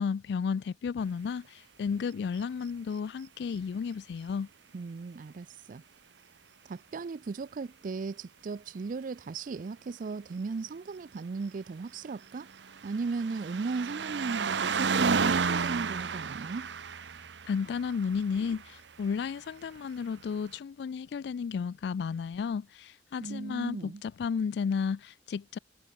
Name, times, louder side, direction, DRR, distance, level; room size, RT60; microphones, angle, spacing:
voice 1, 0.0-4.5 17.4-25.6, left 6 dB, 70° left, 0.3 m, -33 dB
voice 2, 4.7-5.8 6.6-12.5 12.8-16.7 23.2-24.0, right 4 dB, 50° right, 0.4 m, -36 dB
sound 1, 12.1-18.8 19.8-19.9, right 5 dB, 85° right, 0.9 m, -32 dB
head